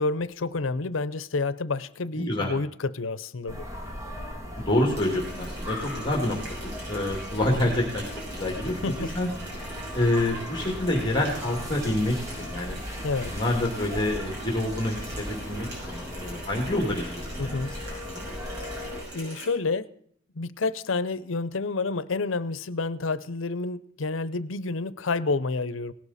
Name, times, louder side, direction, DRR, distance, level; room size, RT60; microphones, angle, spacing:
voice 1, 0.0-3.6 7.6-7.7 8.8-9.1 13.0-13.3 17.4-17.7 19.1-19.9 20.4-25.9, left 3 dB, 90° left, 17 dB, 0.7 m, -29 dB
voice 2, 2.2-2.5 4.6-6.4 6.9-8.7 9.1-9.3 9.6-12.8 13.2-18.0, left 1 dB, 25° left, 0 dB, 2.3 m, -27 dB
sound 1, 3.5-19.0, left 1 dB, 15° right, 2.5 m, -37 dB
Water tap faucet, 5.0-19.5, right 1 dB, 55° right, 6.4 m, -43 dB
18.0 x 12.0 x 4.2 m, 0.62 s
head